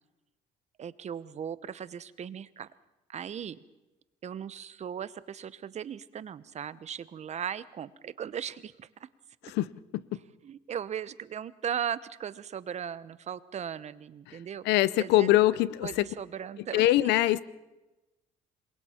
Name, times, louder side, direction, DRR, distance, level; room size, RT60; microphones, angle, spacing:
voice 1, 0.8-2.7 3.1-3.6 4.2-9.1 10.4-14.6 14.9-15.4 15.8-16.9, right 8 dB, 40° right, 16 dB, 0.9 m, -37 dB
voice 2, 14.6-16.1 16.7-17.4, left 16 dB, 85° left, 18 dB, 0.8 m, -23 dB
27.0 x 22.5 x 4.4 m, 1.0 s
cardioid pair, 110°, 17 cm